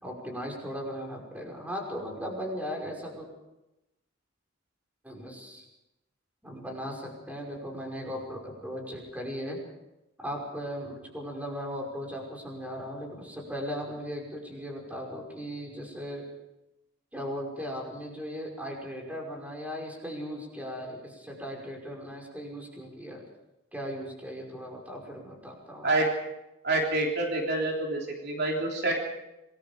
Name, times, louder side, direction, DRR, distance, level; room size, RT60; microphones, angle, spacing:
voice 1, 0.0-3.3 5.0-5.6 6.4-9.6 10.2-16.3 17.1-23.2 23.7-25.9, equal, 10° right, 0 dB, 5.6 m, -37 dB
voice 2, 26.6-29.0, right 2 dB, 55° right, 0 dB, 3.4 m, -27 dB
27.0 x 20.5 x 5.2 m, 0.94 s
head